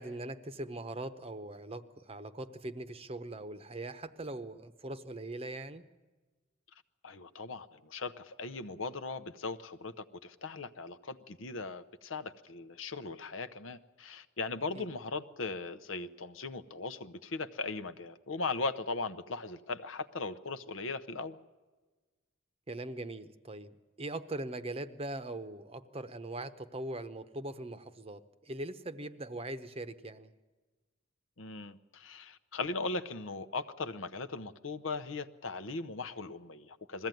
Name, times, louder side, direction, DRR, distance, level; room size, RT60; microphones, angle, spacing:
voice 1, 0.0-5.8 14.7-14.9 22.7-30.3, right 2 dB, 30° right, 11 dB, 0.8 m, -41 dB
voice 2, 7.0-21.4 31.4-37.1, left 3 dB, 80° left, 11 dB, 0.9 m, -39 dB
21.0 x 15.0 x 9.2 m, 1.3 s
head